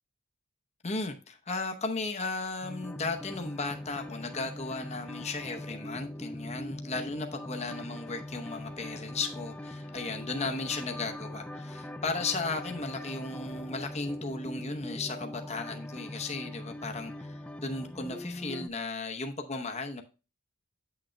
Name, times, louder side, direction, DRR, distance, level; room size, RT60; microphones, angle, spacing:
voice 1, 0.8-20.0, left 3 dB, 30° left, 0.8 m, -35 dB
sound 1, 2.6-18.7, left 1 dB, 5° left, 0.3 m, -41 dB
8.9 x 6.2 x 2.2 m
head